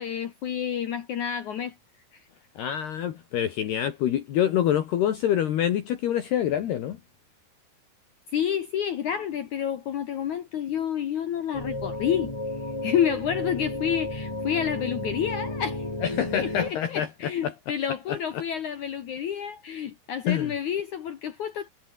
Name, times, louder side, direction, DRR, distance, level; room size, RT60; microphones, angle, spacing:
voice 1, 0.0-1.7 8.3-12.3 12.8-21.7, left 9 dB, 80° left, 1.7 m, -29 dB
voice 2, 2.6-7.0 16.0-17.5 18.1-18.4 20.3-20.5, left 10 dB, 60° left, 3.5 m, -26 dB
sound 1, 11.5-16.7, left 1 dB, 40° left, 0.4 m, -33 dB
omnidirectional pair, 5.6 m